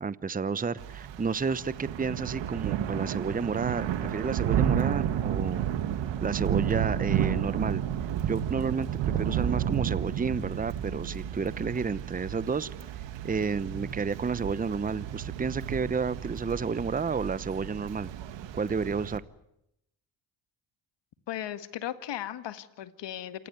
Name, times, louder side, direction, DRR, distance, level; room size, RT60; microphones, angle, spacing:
voice 1, 0.0-5.7 6.2-7.8 8.2-8.9 9.1-12.7 13.2-18.1 18.5-19.2, right 5 dB, 20° right, 17 dB, 0.9 m, -31 dB
Thunder / Rain, 0.8-19.2, right 10 dB, 75° right, 1.7 m, -32 dB
voice 2, 21.3-23.5, left 11 dB, 70° left, 11 dB, 1.9 m, -36 dB
28.0 x 17.0 x 9.4 m, 0.80 s
supercardioid pair, 70°, 44 cm